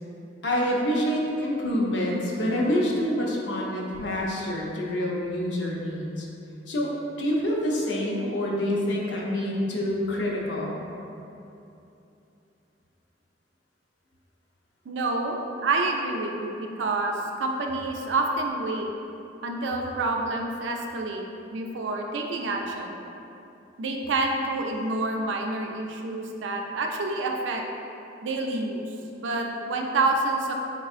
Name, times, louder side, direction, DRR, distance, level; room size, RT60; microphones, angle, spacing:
voice 1, 0.4-6.3 6.7-6.9 7.2-10.8, left 1 dB, 75° left, -3 dB, 0.6 m, -27 dB
voice 2, 14.9-18.9 19.4-21.3 21.5-23.0 23.8-27.6 28.2-28.8 29.2-30.5, right 2 dB, 90° right, 2 dB, 0.4 m, -28 dB
3.8 x 3.5 x 2.4 m, 2.8 s
head